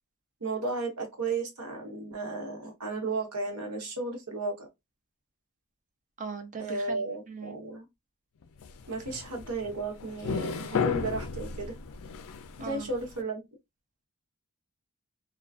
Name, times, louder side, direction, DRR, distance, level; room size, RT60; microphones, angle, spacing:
voice 1, 0.4-4.7 6.6-7.9 8.9-11.7 12.6-13.4, right 3 dB, 85° right, 1.0 m, -34 dB
voice 2, 6.2-7.6 12.6-12.8, right 4 dB, 35° right, 0.5 m, -39 dB
sound 1, 8.4-13.1, left 5 dB, 65° left, 0.4 m, -34 dB
2.3 x 2.3 x 2.3 m
head